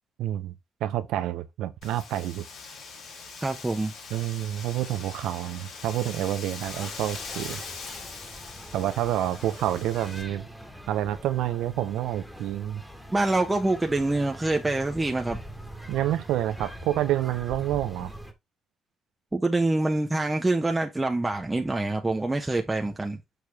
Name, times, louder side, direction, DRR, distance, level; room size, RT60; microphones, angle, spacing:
voice 1, 0.2-0.5 0.8-2.4 4.1-7.6 8.7-10.5 10.9-12.8 15.9-18.1, right 13 dB, 90° right, 0.8 m, -28 dB
Wind, 1.8-10.2, left 4 dB, 70° left, 3.8 m, -42 dB
voice 2, 3.4-3.9 13.1-15.4 19.3-23.2, right 2 dB, 15° right, 1.0 m, -25 dB
sound 1, 6.6-18.3, equal, ahead, 1.7 m, -43 dB
6.7 x 4.6 x 3.5 m
cardioid pair, 90°, 0 cm